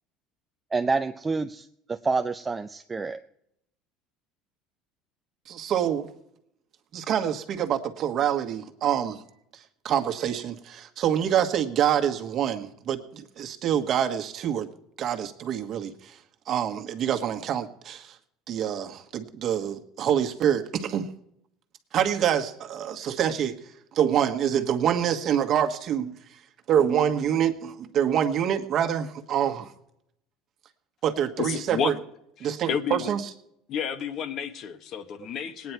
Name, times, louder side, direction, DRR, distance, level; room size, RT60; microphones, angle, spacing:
voice 1, 0.7-3.2, right 4 dB, 20° right, 8 dB, 0.5 m, -28 dB
voice 2, 5.5-6.1 6.9-9.2 9.8-14.7 15.0-16.2 16.5-18.2 18.5-21.1 21.9-23.6 23.9-26.1 26.7-29.7 31.0-31.9 32.4-33.2, right 9 dB, 50° right, 6 dB, 1.4 m, -26 dB
voice 3, 31.4-32.0 32.4-33.1 33.7-35.7, left 7 dB, 50° left, 9 dB, 1.2 m, -31 dB
19.0 x 9.6 x 4.6 m, 0.77 s
supercardioid pair, 115°, 0 cm